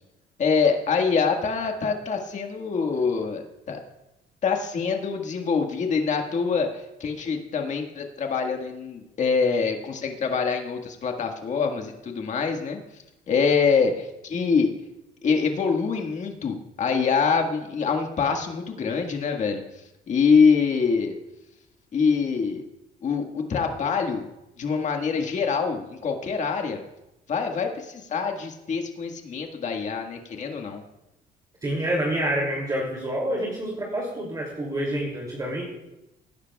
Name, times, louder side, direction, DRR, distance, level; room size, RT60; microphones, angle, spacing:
voice 1, 0.4-3.8 4.4-12.8 13.3-14.7 15.2-19.6 20.1-21.1 21.9-22.6 23.0-24.3 24.6-26.8 27.3-30.8, left 5 dB, 45° left, 3 dB, 1.7 m, -25 dB
voice 2, 31.6-35.6, right 1 dB, 20° right, -2 dB, 2.7 m, -27 dB
18.0 x 9.9 x 2.3 m, 0.93 s
cardioid pair, 110°, 17 cm